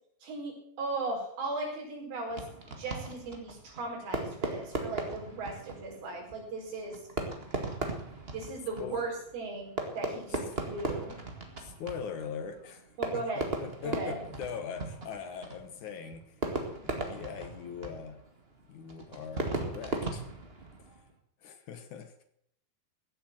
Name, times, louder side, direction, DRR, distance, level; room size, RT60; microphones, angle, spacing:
voice 1, 0.2-2.4 2.8-7.0 8.3-11.2 13.0-13.5 13.8-14.2, right 3 dB, 85° right, -1 dB, 6.4 m, -37 dB
Fireworks, 2.3-21.1, right 3 dB, 30° right, 1.0 m, -38 dB
voice 2, 11.6-18.2 18.7-20.2 21.4-22.2, left 7 dB, 65° left, 8 dB, 2.3 m, -41 dB
16.0 x 7.8 x 7.6 m, 0.70 s
omnidirectional pair, 4.3 m